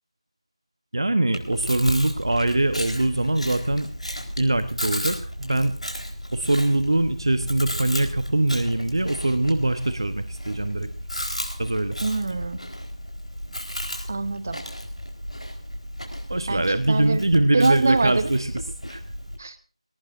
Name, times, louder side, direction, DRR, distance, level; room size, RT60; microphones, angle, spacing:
voice 1, 0.9-3.9 4.4-5.8 6.3-10.9 11.6-12.0 16.3-18.5 18.9-19.0, right 2 dB, 45° right, 11 dB, 1.1 m, -23 dB
Chewing mastication, 1.3-19.4, equal, 85° left, 4.4 m, -34 dB
voice 2, 12.0-12.6 14.1-14.6 16.5-17.2 17.5-18.3 19.4-19.6, right 3 dB, 25° right, 14 dB, 0.9 m, -24 dB
20.5 x 18.0 x 2.7 m, 0.40 s
figure-of-eight pair, 170°, 3 cm